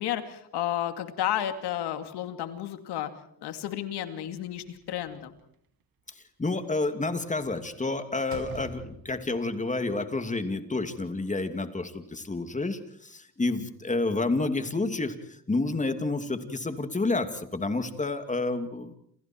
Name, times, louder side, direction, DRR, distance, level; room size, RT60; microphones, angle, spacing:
voice 1, 0.0-3.1 3.4-5.3, left 11 dB, 90° left, 8 dB, 2.6 m, -32 dB
Slam, 4.4-5.4 7.5-7.8 8.2-9.4, right 5 dB, 65° right, 3.2 m, -45 dB
voice 2, 6.4-15.1 15.5-19.0, left 3 dB, 20° left, 8 dB, 2.7 m, -29 dB
29.0 x 28.0 x 4.6 m, 0.66 s
cardioid pair, 105°, 39 cm